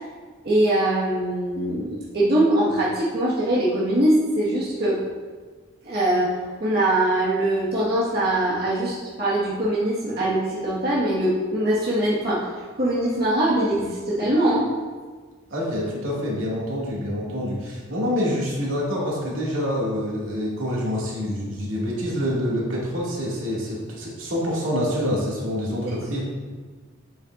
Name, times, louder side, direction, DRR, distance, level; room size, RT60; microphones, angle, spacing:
voice 1, 0.4-5.0 5.8-12.5 12.8-14.7 25.9-26.0, right 1 dB, 50° right, -8 dB, 1.7 m, -22 dB
voice 2, 15.5-26.2, equal, 90° right, -5 dB, 2.3 m, -26 dB
8.8 x 8.2 x 2.6 m, 1.4 s
head